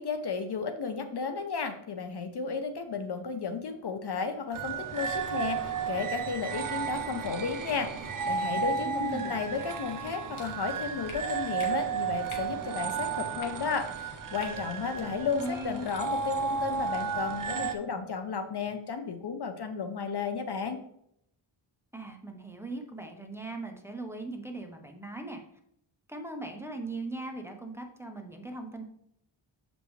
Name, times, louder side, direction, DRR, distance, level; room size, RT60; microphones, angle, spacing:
voice 1, 0.0-20.8, left 5 dB, 55° left, 8 dB, 0.8 m, -33 dB
sound 1, 4.5-17.7, right 6 dB, 45° right, 0.7 m, -33 dB
voice 2, 8.8-9.7 15.0-15.9 21.9-25.4 26.1-28.8, right 2 dB, 5° right, 3 dB, 0.9 m, -39 dB
sound 2, 10.3-10.5 11.1-11.2 11.6-11.7 12.3-12.5 13.4-13.5 14.4-14.5 14.9-15.1, left 4 dB, 85° left, 1.5 m, -44 dB
7.6 x 5.3 x 3.2 m, 0.73 s
wide cardioid pair, 105°, 47 cm